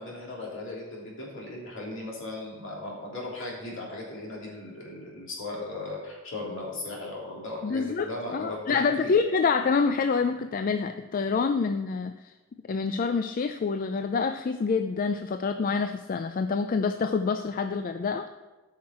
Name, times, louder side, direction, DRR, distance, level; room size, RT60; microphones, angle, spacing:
voice 1, 0.0-9.1, left 2 dB, 65° left, -4 dB, 3.0 m, -37 dB
voice 2, 7.6-12.1 12.7-18.3, left 5 dB, 45° left, 8 dB, 0.4 m, -27 dB
13.0 x 5.7 x 4.4 m, 1.2 s
head